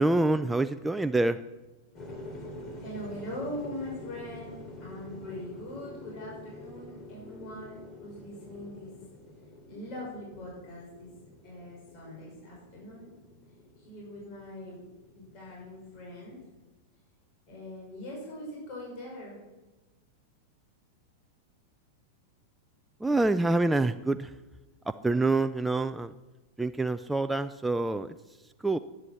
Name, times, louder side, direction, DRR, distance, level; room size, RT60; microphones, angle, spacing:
voice 1, 0.0-1.4 23.0-24.3 24.9-26.1 26.6-28.2 28.6-28.8, right 2 dB, 5° right, 9 dB, 0.4 m, -26 dB
sound 1, 1.9-16.5, left 2 dB, 30° left, 2.8 m, -47 dB
voice 2, 2.8-8.9 9.7-11.2 11.4-13.1 13.8-14.8 15.1-16.4 17.5-19.4, left 1 dB, 45° left, -3 dB, 5.7 m, -42 dB
11.0 x 9.9 x 7.1 m, 1.1 s
hypercardioid pair, 130°, 0 cm